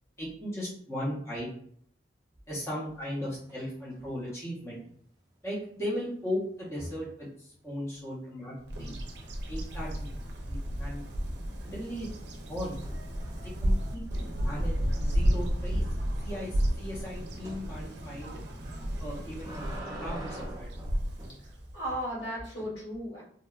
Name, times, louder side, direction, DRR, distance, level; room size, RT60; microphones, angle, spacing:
voice 1, 0.2-1.5 2.5-4.8 5.4-8.9 9.5-10.1 10.5-11.0 11.6-12.1 12.5-12.8 13.4-14.0 14.4-14.7 15.0-15.8 16.2-18.4 19.0-19.6 20.0-20.7, equal, 15° left, -6 dB, 0.7 m, -37 dB
sound 1, 3.0-3.6 3.9-4.3 6.6-7.2 10.3-10.8 11.2-13.6 14.0-14.1 14.5-14.6 15.0-15.1 17.4-17.6 18.9-21.4 22.2-22.7, right 1 dB, 20° right, 0.6 m, -46 dB
Bird vocalization bird call bird song, 8.7-21.9, equal, 70° right, 0.5 m, -32 dB
voice 2, 21.4-23.2, equal, 85° left, -6 dB, 1.3 m, -36 dB
2.8 x 2.2 x 2.3 m, 0.62 s
head